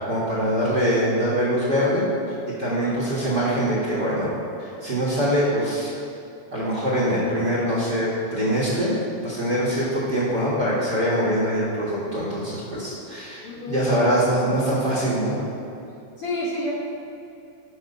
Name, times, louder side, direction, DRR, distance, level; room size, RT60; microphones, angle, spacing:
voice 1, 0.1-2.0 2.6-4.3 4.6-5.9 6.5-8.9 9.2-13.4 13.7-15.4, equal, 40° right, -6 dB, 1.7 m, -23 dB
voice 2, 2.6-3.0 13.4-14.2 16.2-16.7, left 1 dB, 60° left, -6 dB, 1.6 m, -30 dB
12.5 x 5.1 x 5.4 m, 2.6 s
omnidirectional pair, 3.6 m